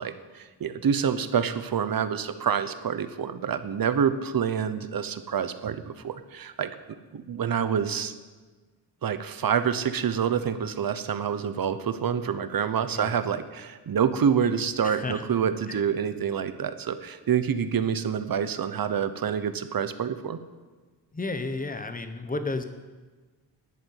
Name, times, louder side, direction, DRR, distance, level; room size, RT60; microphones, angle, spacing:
voice 1, 0.0-6.7 7.1-8.2 9.0-20.4, right 7 dB, 55° right, 11 dB, 0.8 m, -27 dB
voice 2, 14.8-15.2 15.7-15.8 21.1-22.6, left 3 dB, 20° left, 8 dB, 0.9 m, -32 dB
11.0 x 8.2 x 9.4 m, 1.3 s
wide cardioid pair, 170°, 43 cm